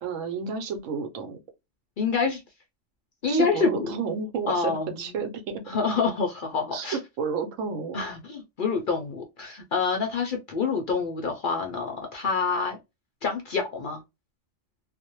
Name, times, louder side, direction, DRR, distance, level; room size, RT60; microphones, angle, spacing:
voice 1, 0.0-1.4 3.3-5.6 6.7-8.0, right 5 dB, 80° right, 1.0 m, -31 dB
voice 2, 2.0-2.4 3.2-3.9 4.5-5.2 5.7-7.0 7.9-12.8 13.2-14.0, left 4 dB, 55° left, 0.6 m, -27 dB
2.4 x 2.0 x 2.8 m
omnidirectional pair, 1.3 m